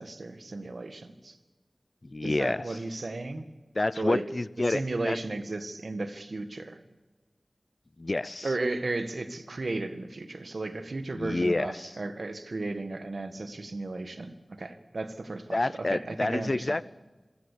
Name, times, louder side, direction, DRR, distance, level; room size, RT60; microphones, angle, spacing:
voice 1, 0.0-1.4 2.2-3.4 3.9-4.2 4.6-6.8 8.4-16.8, right 2 dB, 80° right, 9 dB, 1.8 m, -34 dB
voice 2, 2.1-2.6 3.8-4.8 5.1-5.2 8.0-8.5 11.2-11.7 15.5-16.8, left 2 dB, 50° left, 19 dB, 0.6 m, -28 dB
26.5 x 15.5 x 8.5 m, 1.2 s
wide cardioid pair, 45°, 0 cm